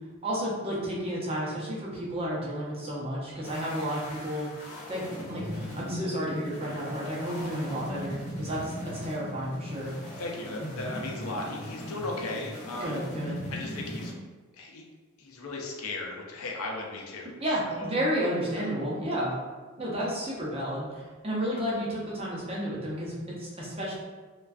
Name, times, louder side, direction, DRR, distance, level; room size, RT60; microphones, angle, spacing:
voice 1, 0.2-9.9 12.8-13.4 17.4-19.3 19.8-23.9, equal, 25° right, -6 dB, 0.6 m, -32 dB
sound 1, 3.4-14.1, left 1 dB, 35° left, 0.5 m, -39 dB
voice 2, 10.2-13.0 13.5-14.1 14.5-14.9 15.2-17.3 17.7-17.9 18.5-18.7, left 2 dB, 85° left, 0 dB, 0.5 m, -36 dB
2.4 x 2.2 x 2.3 m, 1.4 s
head